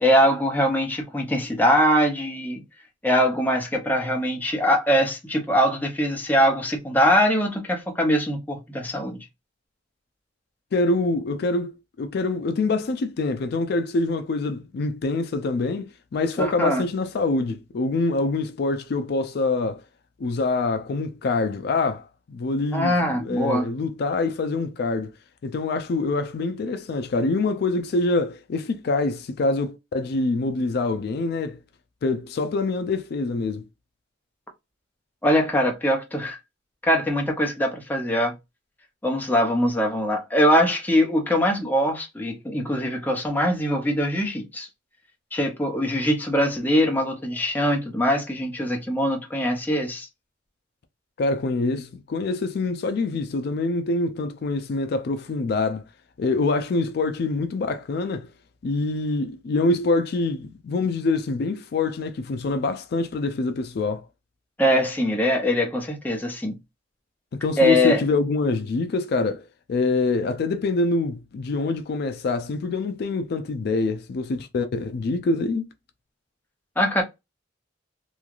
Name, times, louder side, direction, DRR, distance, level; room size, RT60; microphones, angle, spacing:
voice 1, 0.0-2.6 3.0-9.2 16.4-16.8 22.7-23.7 35.2-36.4 36.8-38.3 39.0-44.7 45.3-50.1 64.6-66.5 67.6-68.0 76.8-77.0, equal, 10° left, 0.6 m, -22 dB
voice 2, 10.7-19.8 20.2-25.1 25.4-31.6 32.0-33.6 51.2-55.8 56.2-58.3 58.6-64.0 67.3-75.7, left 3 dB, 55° left, 0.3 m, -25 dB
3.1 x 2.3 x 2.4 m
head